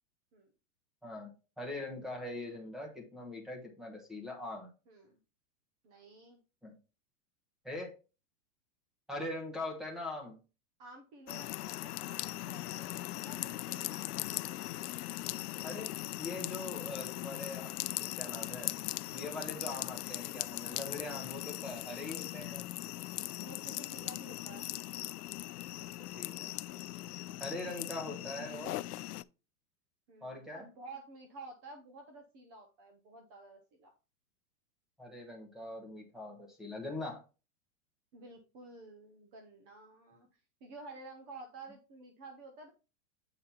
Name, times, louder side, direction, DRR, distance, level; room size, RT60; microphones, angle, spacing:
voice 1, 1.6-4.7 6.6-6.8 7.6-7.9 9.1-10.4 15.6-18.7 19.1-22.7 25.8-25.9 26.1-26.5 27.4-28.8 30.2-30.7 35.0-37.2, left 2 dB, ahead, 2 dB, 1.1 m, -42 dB
voice 2, 5.8-6.4 10.8-14.3 23.4-24.7 30.1-33.9 38.1-40.3 40.6-42.7, right 2 dB, 15° right, 4 dB, 0.5 m, -51 dB
sound 1, 11.3-29.2, left 16 dB, 85° left, 0.5 m, -39 dB
8.5 x 4.0 x 4.3 m, 0.32 s
supercardioid pair, 170°, 45 cm